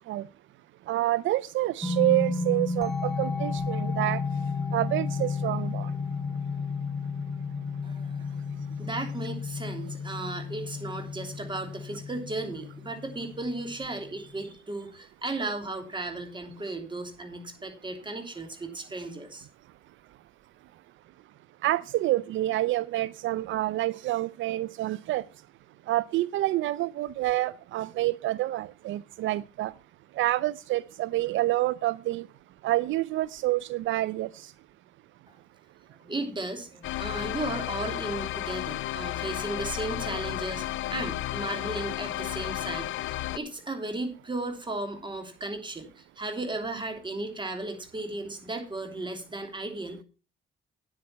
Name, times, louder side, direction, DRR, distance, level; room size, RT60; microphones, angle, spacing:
voice 1, 0.9-4.2 4.7-5.9 21.6-25.2 25.9-29.7 30.2-32.3 32.6-34.5, right 16 dB, 75° right, 0.4 m, -28 dB
sound 1, 1.8-14.4, left 4 dB, ahead, 1.4 m, -32 dB
voice 2, 7.8-8.3 8.8-19.5 35.3-35.4 35.9-50.0, right 2 dB, 25° right, 3.1 m, -35 dB
sound 2, 36.8-43.4, left 14 dB, 80° left, 0.7 m, -33 dB
9.4 x 8.7 x 5.7 m
cardioid pair, 90°, 20 cm